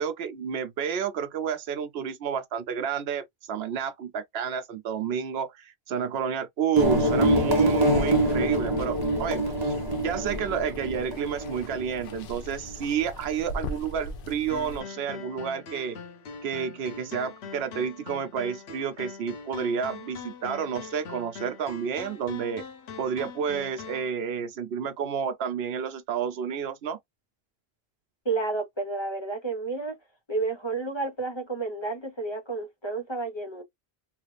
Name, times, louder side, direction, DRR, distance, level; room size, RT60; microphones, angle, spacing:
voice 1, 0.0-16.0 16.4-22.6 23.0-27.0, right 7 dB, 80° right, 0.8 m, -30 dB
sound 1, 6.7-12.2, right 1 dB, 25° right, 0.9 m, -25 dB
Water, 6.8-14.8, left 1 dB, 65° left, 0.8 m, -39 dB
sound 2, 14.5-24.1, left 6 dB, 90° left, 1.0 m, -42 dB
voice 2, 28.2-29.9 30.3-33.6, right 3 dB, 30° left, 0.9 m, -31 dB
3.2 x 2.4 x 3.2 m
omnidirectional pair, 1.0 m